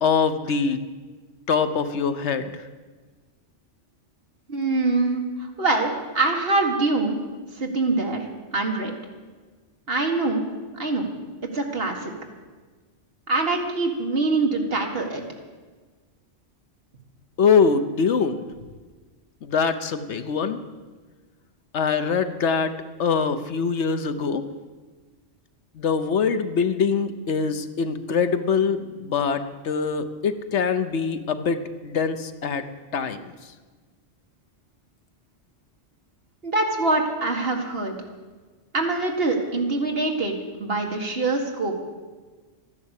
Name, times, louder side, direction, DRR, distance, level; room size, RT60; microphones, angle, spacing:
voice 1, 0.0-0.8 1.5-2.6 17.4-18.5 19.4-20.6 21.7-22.7 23.0-24.4 25.8-32.6 32.9-33.3, left 5 dB, 75° left, 10 dB, 1.2 m, -23 dB
voice 2, 4.5-7.2 7.6-8.3 8.5-8.9 9.9-10.5 10.8-11.1 11.5-12.1 13.3-15.2 36.4-38.0 38.7-41.8, right 3 dB, 55° right, 2 dB, 2.0 m, -24 dB
13.5 x 10.5 x 8.2 m, 1.4 s
omnidirectional pair, 1.2 m